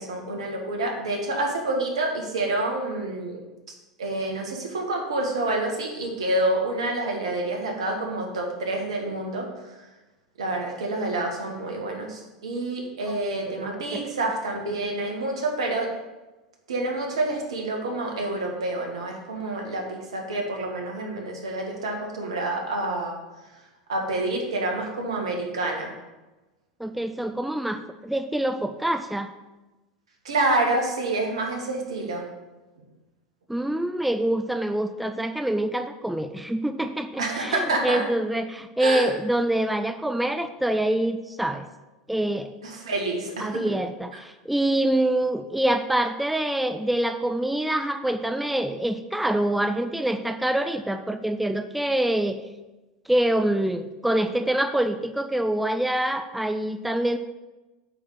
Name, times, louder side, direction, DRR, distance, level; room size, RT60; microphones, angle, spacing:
voice 1, 0.0-3.4 4.0-9.7 10.4-15.9 16.7-23.2 23.9-25.9 30.3-32.2 37.2-38.1 38.8-39.1 42.6-43.6, right 2 dB, 75° right, 1 dB, 1.7 m, -28 dB
voice 2, 13.5-14.0 26.8-29.3 33.5-41.7 42.1-42.5 43.4-52.4 53.1-57.2, right 1 dB, 5° right, 8 dB, 0.5 m, -25 dB
9.0 x 3.8 x 6.4 m, 1.1 s
hypercardioid pair, 85°, 3 cm